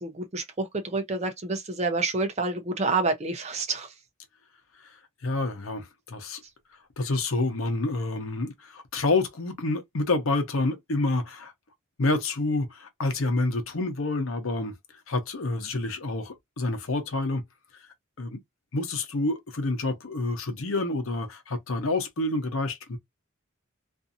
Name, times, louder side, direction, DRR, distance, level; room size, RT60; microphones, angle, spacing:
voice 1, 0.0-3.9, right 3 dB, 30° right, 0.6 m, -28 dB
voice 2, 5.2-6.4 7.0-11.5 12.0-14.7 15.1-17.4 18.2-18.4 18.7-23.0, left 2 dB, 80° left, 0.8 m, -28 dB
2.6 x 2.5 x 2.6 m
head